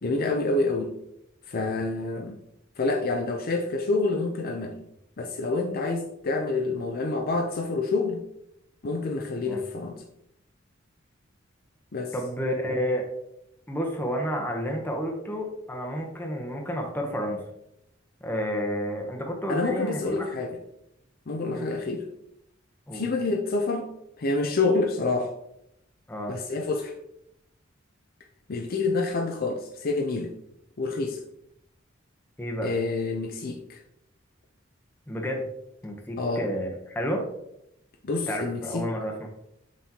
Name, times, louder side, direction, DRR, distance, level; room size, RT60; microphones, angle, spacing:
voice 1, 0.0-1.0 1.5-2.4 2.8-4.8 5.2-8.2 8.8-9.9 11.9-12.1 19.5-20.6 21.3-22.1 22.9-25.3 26.3-26.9 28.5-30.3 30.8-31.2 32.6-33.8 36.2-36.5 38.0-38.9, left 3 dB, 50° left, 2 dB, 0.5 m, -27 dB
voice 2, 12.1-13.1 13.7-17.4 18.2-20.2 21.5-21.7 22.9-23.0 26.1-26.3 32.4-32.7 35.1-35.5 35.8-37.3 38.3-39.3, equal, 10° left, 0 dB, 0.8 m, -30 dB
6.1 x 5.8 x 2.8 m, 0.80 s
head